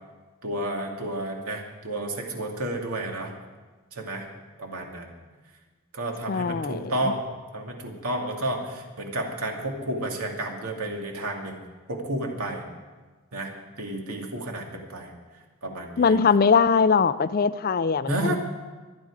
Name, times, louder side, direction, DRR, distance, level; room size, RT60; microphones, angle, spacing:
voice 1, 0.4-3.3 3.9-4.3 4.6-5.1 5.9-7.2 7.5-11.6 11.9-12.6 13.3-13.5 13.8-15.1 15.6-16.2 18.1-18.3, right 1 dB, 80° right, 1 dB, 2.4 m, -31 dB
voice 2, 6.3-6.9 16.0-18.3, left 5 dB, 40° left, 14 dB, 0.4 m, -21 dB
24.5 x 9.5 x 4.9 m, 1.3 s
head